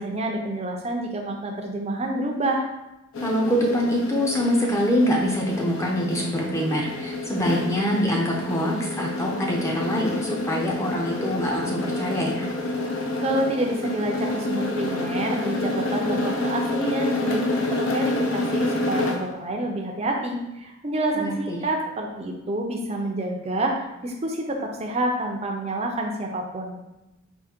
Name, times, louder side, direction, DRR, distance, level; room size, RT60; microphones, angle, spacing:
voice 1, 0.0-2.7 13.2-26.8, right 1 dB, 30° right, 2 dB, 0.5 m, -28 dB
sound 1, 3.1-19.3, left 2 dB, 65° left, 0.5 m, -28 dB
voice 2, 3.2-12.5 21.1-21.7, equal, 15° left, -2 dB, 0.6 m, -25 dB
3.8 x 2.7 x 4.3 m, 0.96 s
head